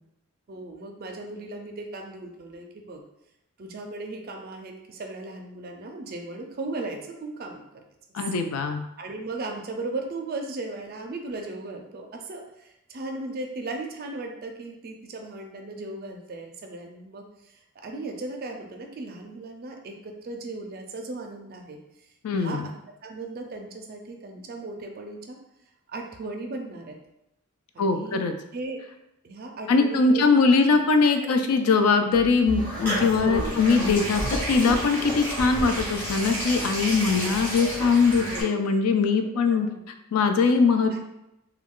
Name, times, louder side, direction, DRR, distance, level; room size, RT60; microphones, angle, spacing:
voice 1, 0.5-3.0 3.6-7.8 9.0-21.8 22.3-22.6 23.0-25.4 25.9-27.0 27.7-28.3 28.5-28.8 29.2-30.2 31.2-31.3 33.2-34.0 34.5-34.8 37.1-37.4 38.2-38.7 39.3-39.8 40.9-41.0, right 2 dB, 45° right, 2 dB, 0.4 m, -37 dB
voice 2, 8.1-8.8 22.2-22.7 27.8-28.3 29.7-34.2 34.5-41.0, left 4 dB, 85° left, 7 dB, 0.4 m, -21 dB
sound 1, 32.1-38.4, equal, 10° left, 1.1 m, -31 dB
2.3 x 2.2 x 3.6 m, 0.86 s
head